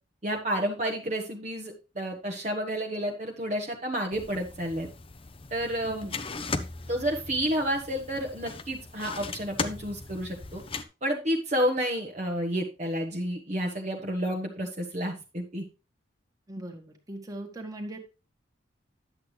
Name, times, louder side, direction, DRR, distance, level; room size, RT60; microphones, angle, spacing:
voice 1, 0.2-4.9 5.5-6.0 6.9-10.6 11.0-15.7, equal, 40° right, 1 dB, 1.2 m, -30 dB
sound 1, 4.1-10.8, left 3 dB, 30° left, 0.7 m, -38 dB
voice 2, 5.9-6.3 16.5-18.0, right 1 dB, 20° right, 3 dB, 1.6 m, -40 dB
10.5 x 8.0 x 3.3 m, 0.31 s
head